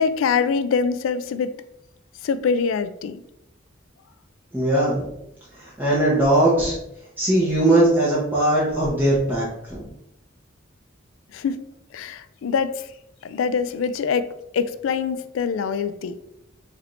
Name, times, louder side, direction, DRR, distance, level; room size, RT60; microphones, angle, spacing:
voice 1, 0.0-1.6 2.2-3.2 11.3-11.6 11.9-12.9 13.2-16.2, left 6 dB, 80° left, 11 dB, 0.3 m, -24 dB
voice 2, 4.5-5.1 5.6-6.8 7.2-9.9, right 1 dB, 10° right, -7 dB, 0.8 m, -20 dB
4.3 x 3.3 x 2.5 m, 0.83 s
head